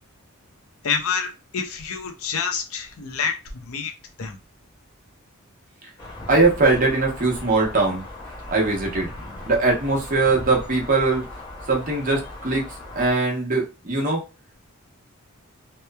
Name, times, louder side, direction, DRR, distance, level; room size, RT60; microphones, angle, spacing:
voice 1, 0.8-3.4 3.7-3.9 4.2-4.4, left 6 dB, 75° left, 5 dB, 0.5 m, -27 dB
sound 1, 6.0-13.1, left 1 dB, 20° left, 0.5 m, -38 dB
voice 2, 6.3-8.0 8.5-9.1 9.4-11.3 11.7-14.2, right 3 dB, 35° right, -1 dB, 0.8 m, -21 dB
2.9 x 2.0 x 2.2 m, 0.28 s
head